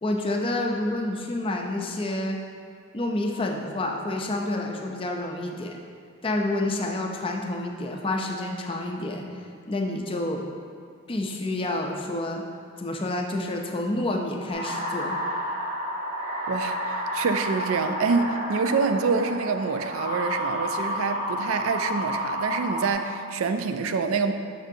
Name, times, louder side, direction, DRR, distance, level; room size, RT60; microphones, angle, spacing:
voice 1, 0.0-2.4 2.9-5.8 6.2-10.4 11.1-12.4 12.8-15.2, left 1 dB, 25° left, 2 dB, 0.4 m, -29 dB
sound 1, 14.5-22.9, equal, 40° right, 1.4 m, -30 dB
voice 2, 16.5-24.3, right 4 dB, 75° right, 8 dB, 0.4 m, -26 dB
6.4 x 6.3 x 2.7 m, 2.2 s
head